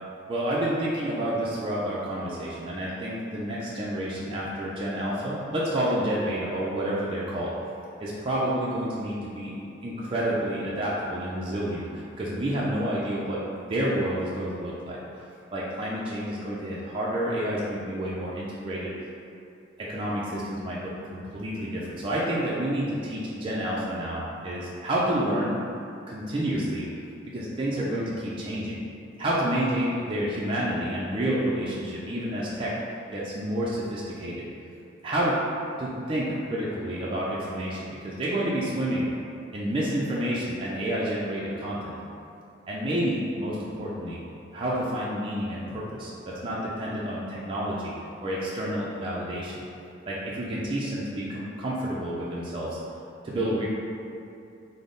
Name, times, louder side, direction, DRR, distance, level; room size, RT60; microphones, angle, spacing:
voice 1, 0.3-7.5 8.0-15.0 15.5-18.9 19.8-25.6 26.1-26.9 27.2-28.8 29.2-32.7 33.1-34.5 35.0-35.4 35.8-39.1 39.5-42.0 42.7-44.2 44.5-47.9 48.2-49.5 50.1-52.7 53.2-53.7, right 1 dB, 25° right, -6 dB, 0.3 m, -29 dB
3.5 x 2.0 x 3.7 m, 2.6 s
head